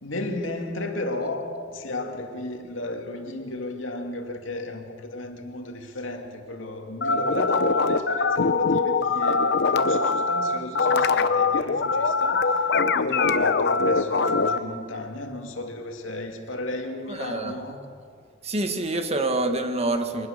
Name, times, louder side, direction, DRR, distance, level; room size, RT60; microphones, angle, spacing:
voice 1, 0.0-17.8, left 2 dB, 80° left, 3 dB, 2.5 m, -34 dB
sound 1, 7.0-14.6, left 4 dB, 60° left, 0.9 m, -22 dB
voice 2, 17.1-17.5 18.4-20.3, right 2 dB, 35° right, 6 dB, 1.6 m, -26 dB
24.0 x 20.0 x 6.7 m, 2.2 s
head